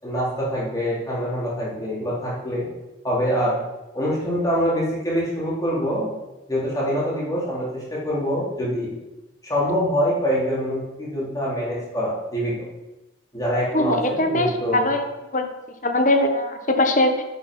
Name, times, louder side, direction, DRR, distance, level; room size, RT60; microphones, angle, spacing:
voice 1, 0.0-2.7 3.0-3.6 3.9-6.1 6.5-8.9 9.4-12.5 13.3-14.9, equal, 20° left, -7 dB, 4.0 m, -25 dB
voice 2, 13.7-15.0 15.3-15.5 15.8-17.2, left 1 dB, 40° left, 6 dB, 1.2 m, -21 dB
9.1 x 8.4 x 5.7 m, 1.0 s
head